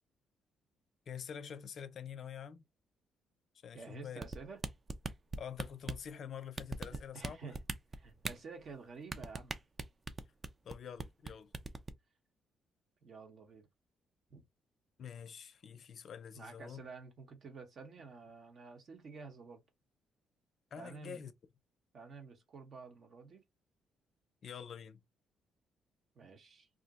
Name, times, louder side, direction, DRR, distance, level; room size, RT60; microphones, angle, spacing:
voice 1, 1.1-2.6 3.6-4.2 5.4-7.4 10.6-11.5 15.0-16.8 20.7-21.3 24.4-25.0, left 8 dB, 60° left, 0.4 m, -46 dB
voice 2, 3.7-4.6 6.9-7.6 7.9-9.6 13.0-13.7 14.3-14.4 16.3-19.6 20.8-21.2 21.9-23.4 26.1-26.7, right 4 dB, 55° right, 1.0 m, -50 dB
sound 1, 4.2-6.1 6.6-7.3 7.5-8.3 9.1-10.7 11.0-11.3 11.5-11.9, right 3 dB, 30° right, 0.4 m, -38 dB
2.5 x 2.1 x 3.9 m
cardioid pair, 90°, 0 cm